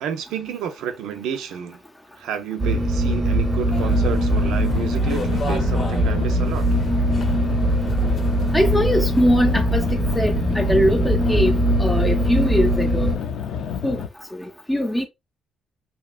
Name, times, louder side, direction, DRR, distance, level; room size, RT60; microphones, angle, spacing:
voice 1, 0.0-1.8 2.2-6.7, right 8 dB, 90° right, 0.5 m, -30 dB
sound 1, 2.6-13.2, right 1 dB, 30° right, 0.7 m, -21 dB
sound 2, 3.6-14.1, left 8 dB, 80° left, 0.4 m, -30 dB
sound 3, 3.7-9.2, left 3 dB, 45° left, 0.7 m, -37 dB
voice 2, 8.5-11.5 11.8-13.1 13.8-14.0 14.3-15.1, equal, 10° left, 0.5 m, -21 dB
2.8 x 2.2 x 2.3 m
cardioid pair, 90°, 0 cm